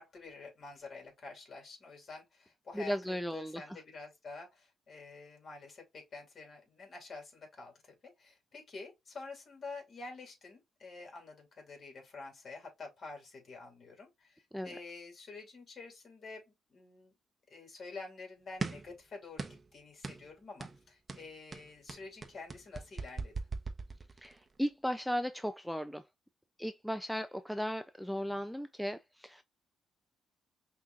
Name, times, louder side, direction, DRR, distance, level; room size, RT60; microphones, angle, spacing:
voice 1, 0.0-17.1 17.5-23.3, left 3 dB, 45° left, 2.7 m, -48 dB
voice 2, 2.7-3.8 14.5-14.7 24.2-26.0 26.6-29.4, equal, ahead, 0.4 m, -36 dB
sound 1, 18.6-18.9 19.4-19.7 20.0-20.2 20.6-20.8 21.1-24.4, right 4 dB, 30° right, 0.7 m, -39 dB
5.8 x 2.9 x 2.4 m
cardioid pair, 90°, 0 cm